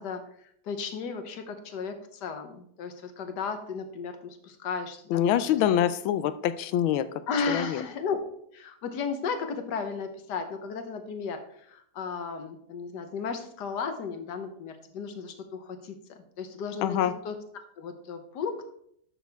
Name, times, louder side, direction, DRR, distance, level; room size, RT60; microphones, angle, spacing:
voice 1, 0.0-5.2 5.5-5.6 7.3-8.2 8.5-17.0 17.2-17.4 17.8-18.6, left 5 dB, 60° left, 8 dB, 1.4 m, -34 dB
voice 2, 5.1-7.1 7.5-7.8 16.8-17.1, left 10 dB, 80° left, 14 dB, 1.4 m, -25 dB
12.0 x 6.3 x 3.5 m, 0.69 s
omnidirectional pair, 2.3 m